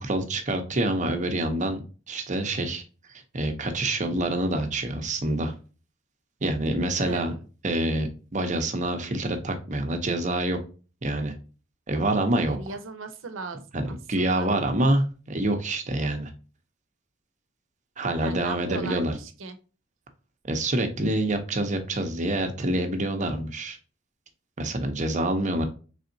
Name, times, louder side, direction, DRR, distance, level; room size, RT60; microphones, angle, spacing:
voice 1, 0.0-1.8 2.1-2.8 3.3-5.5 6.4-7.3 7.6-10.6 11.0-11.3 11.9-12.6 13.7-13.8 14.1-16.3 18.0-19.1 20.5-23.8 24.6-25.7, right 1 dB, 40° right, 6 dB, 0.7 m, -26 dB
voice 2, 7.0-7.5 12.5-13.6 13.9-14.5 18.2-19.6, right 3 dB, 85° right, 9 dB, 0.7 m, -38 dB
4.1 x 3.4 x 2.7 m, 0.34 s
head